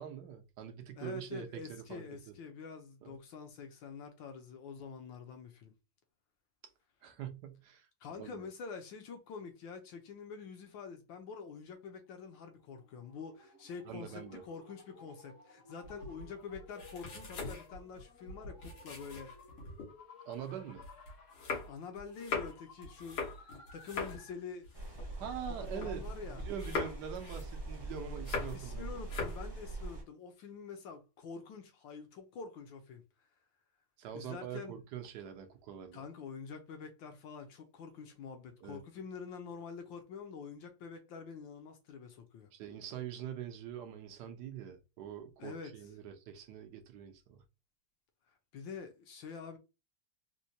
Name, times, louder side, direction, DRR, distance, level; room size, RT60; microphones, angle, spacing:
voice 1, 0.0-2.3 3.0-3.2 7.0-7.9 8.2-8.4 13.8-14.4 20.2-20.8 25.2-26.0 26.3-29.3 34.0-36.0 38.6-38.8 42.5-47.4, right 9 dB, 70° right, 1.0 m, -44 dB
voice 2, 1.0-5.7 8.0-19.4 21.7-24.7 25.5-26.4 28.5-33.0 34.1-34.8 35.9-42.5 45.4-45.7 48.5-49.6, left 5 dB, 70° left, 1.3 m, -46 dB
sound 1, 11.8-24.5, left 3 dB, 55° left, 0.9 m, -57 dB
sound 2, 15.8-19.9 20.3-26.1 26.4-28.7 29.0-29.5, left 4 dB, 90° left, 2.2 m, -41 dB
sound 3, 24.7-30.0, right 2 dB, 30° right, 0.5 m, -43 dB
4.4 x 2.1 x 2.6 m
omnidirectional pair, 2.3 m